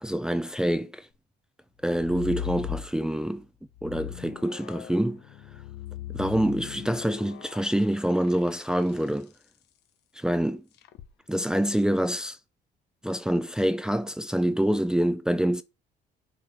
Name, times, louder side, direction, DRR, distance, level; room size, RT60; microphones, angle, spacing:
voice 1, 0.0-1.1 1.8-3.5 3.8-5.2 6.1-9.3 10.2-10.6 11.3-12.4 13.0-15.6, right 1 dB, 5° right, 0.6 m, -26 dB
sound 1, 1.8-3.3 3.7-9.2 10.8-11.1, left 11 dB, 80° left, 1.1 m, -39 dB
7.0 x 4.9 x 6.3 m
cardioid pair, 110°, 17 cm